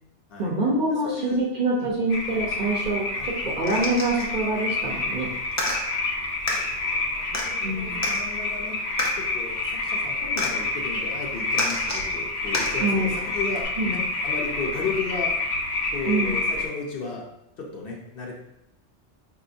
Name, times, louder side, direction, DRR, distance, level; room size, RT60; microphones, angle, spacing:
voice 1, 0.4-5.3 7.6-8.0 12.8-13.1 13.8-14.0 16.1-16.4, right 2 dB, 45° right, -4 dB, 0.7 m, -25 dB
voice 2, 1.0-1.4 1.8-1.9 3.1-3.3 6.5-8.8 9.2-15.4 15.9-17.3 17.6-18.3, left 4 dB, 55° left, -2 dB, 0.8 m, -34 dB
sound 1, 2.1-16.7, left 3 dB, 90° left, 1.1 m, -28 dB
sound 2, 3.7-4.3 5.5-5.8 6.5-6.6 7.3-7.5 8.0-8.2 9.0-9.1 10.4-10.5 11.5-12.1 12.5-12.7 13.6-13.7, left 1 dB, 25° left, 0.3 m, -28 dB
5.0 x 2.8 x 2.6 m, 0.87 s
omnidirectional pair, 1.2 m